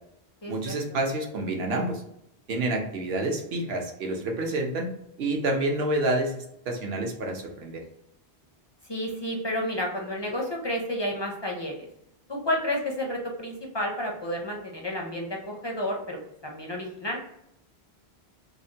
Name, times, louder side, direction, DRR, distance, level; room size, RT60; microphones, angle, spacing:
voice 1, 0.5-2.0 2.5-4.9 5.2-7.8, right 2 dB, 70° right, 1 dB, 0.9 m, -28 dB
voice 2, 8.9-11.9 12.3-17.2, left 1 dB, 40° left, 0 dB, 0.4 m, -31 dB
3.1 x 2.1 x 2.6 m, 0.77 s
omnidirectional pair, 1.1 m